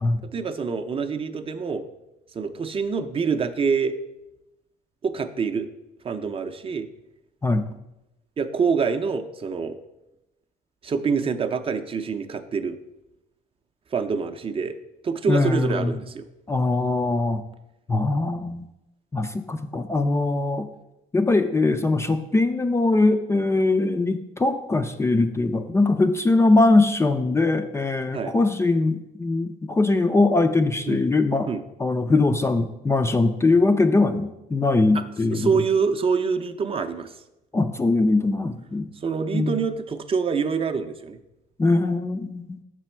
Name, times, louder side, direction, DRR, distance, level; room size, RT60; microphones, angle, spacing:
voice 1, 0.3-1.9 2.3-4.0 5.0-5.7 6.0-6.9 8.4-9.8 10.8-12.8 13.9-14.8 15.0-16.2 28.1-28.3 30.9-31.0 31.5-31.6 35.3-37.1 39.0-41.2, right 5 dB, 35° right, 8 dB, 0.5 m, -26 dB
voice 2, 15.3-16.0 16.5-17.4 17.9-18.7 19.1-20.7 21.1-31.5 31.8-35.6 37.5-38.9 39.3-39.6 41.6-42.6, left 2 dB, 15° left, 8 dB, 0.4 m, -21 dB
6.6 x 6.1 x 4.4 m, 0.92 s
cardioid pair, 110°, 17 cm